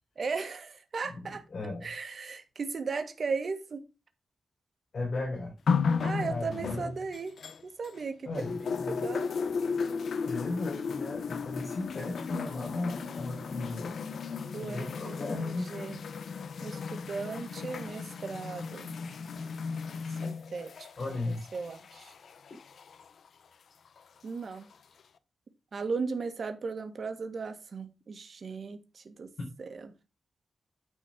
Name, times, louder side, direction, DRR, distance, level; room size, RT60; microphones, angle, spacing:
voice 1, 0.2-1.4 1.8-3.8 6.0-7.3 7.6-8.3 8.9-9.3 14.5-16.0 16.6-18.9 20.2-21.2 21.5-22.1 24.2-24.7 25.7-29.3 29.6-29.9, right 4 dB, 50° right, 1.6 m, -37 dB
voice 2, 1.1-1.9 4.9-5.5 6.2-6.9 8.2-9.3 10.2-13.9 14.6-15.7 21.0-21.4, left 2 dB, 50° left, 4.2 m, -36 dB
sound 1, 5.7-8.0 8.4-23.1 24.0-24.1, left 5 dB, 70° left, 0.8 m, -35 dB
9.8 x 4.5 x 6.1 m
wide cardioid pair, 150°, 0 cm